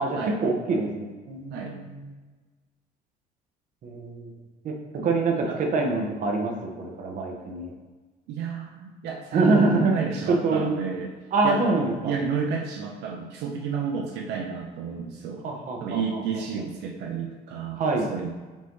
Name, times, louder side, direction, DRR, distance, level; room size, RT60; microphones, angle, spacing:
voice 1, 0.0-2.1 3.8-4.4 4.6-4.8 5.0-7.7 9.3-10.0 10.3-10.7 11.3-12.2 15.4-16.2 17.8-18.1, right 3 dB, 50° right, 1 dB, 0.7 m, -25 dB
voice 2, 8.3-11.1 11.4-15.4 15.8-17.8 18.1-18.3, right 6 dB, 85° right, 1 dB, 0.5 m, -31 dB
5.3 x 2.6 x 3.0 m, 1.3 s
cardioid pair, 110°, 17 cm